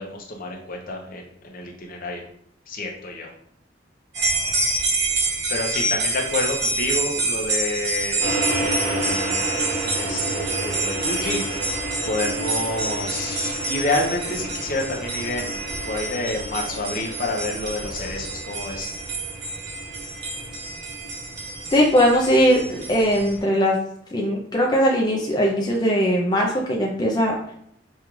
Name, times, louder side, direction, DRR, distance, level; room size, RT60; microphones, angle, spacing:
voice 1, 0.0-2.2 2.7-3.3 5.5-9.5 9.9-18.9, left 2 dB, 50° left, 1 dB, 0.8 m, -29 dB
sound 1, 4.1-23.4, right 2 dB, 60° right, 1.1 m, -28 dB
sound 2, 8.2-23.5, right 1 dB, 40° right, 1.0 m, -32 dB
voice 2, 21.7-23.8 24.1-27.4, equal, 20° left, -2 dB, 0.5 m, -20 dB
5.3 x 2.4 x 3.1 m, 0.70 s
head